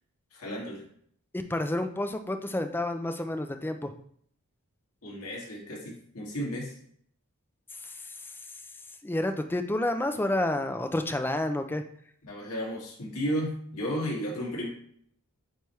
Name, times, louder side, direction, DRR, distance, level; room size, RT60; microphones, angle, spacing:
voice 1, 0.3-0.8 5.0-6.7 12.2-14.7, equal, 80° left, -4 dB, 2.2 m, -33 dB
voice 2, 1.3-3.9 9.0-11.8, left 1 dB, 10° left, 6 dB, 0.4 m, -29 dB
8.9 x 3.5 x 3.1 m, 0.64 s
head